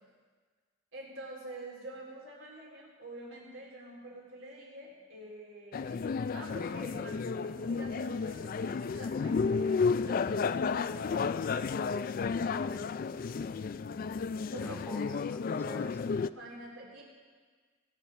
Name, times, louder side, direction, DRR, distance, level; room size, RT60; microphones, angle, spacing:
voice 1, 0.9-11.3 14.5-14.8 16.3-17.0, right 1 dB, 80° right, -3 dB, 4.0 m, -47 dB
sound 1, 5.7-16.3, left 5 dB, 45° left, 0.3 m, -32 dB
voice 2, 14.6-16.1, left 1 dB, 10° left, 2 dB, 1.1 m, -46 dB
20.0 x 7.0 x 5.8 m, 1.5 s
head